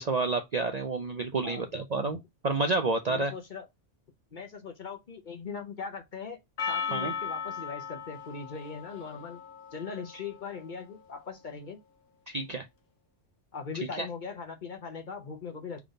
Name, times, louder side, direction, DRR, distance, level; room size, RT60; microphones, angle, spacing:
voice 1, 0.0-2.2 2.4-3.3 6.9-7.1 12.3-12.6 14.0-14.1, right 3 dB, 50° right, 0.5 m, -29 dB
voice 2, 3.1-3.7 4.3-6.4 6.7-9.4 9.7-11.8 13.5-15.8, left 5 dB, 45° left, 0.8 m, -40 dB
Percussion, 6.6-11.1, left 6 dB, 90° left, 1.2 m, -37 dB
3.7 x 3.6 x 3.8 m
omnidirectional pair, 1.3 m